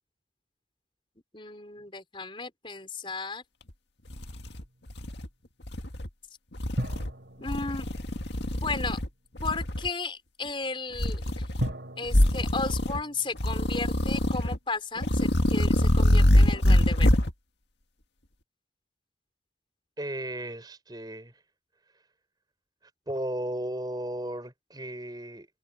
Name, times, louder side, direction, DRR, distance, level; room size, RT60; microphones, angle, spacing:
voice 1, 1.3-3.4 7.4-7.9 8.5-9.0 9.4-11.5 12.0-17.1, left 4 dB, 25° left, 5.1 m, -34 dB
sound 1, 3.7-3.8 4.1-5.3 5.6-6.1 6.5-7.1 7.5-9.1 9.4-9.9 10.9-11.7 12.1-13.0 13.4-14.6 15.0-17.3, left 1 dB, 65° left, 1.9 m, -24 dB
sound 2, 4.1-5.0 6.8-9.1 11.6-14.7, equal, 65° right, 3.4 m, -39 dB
voice 2, 20.0-21.4 23.1-25.5, right 1 dB, 20° right, 5.5 m, -35 dB
head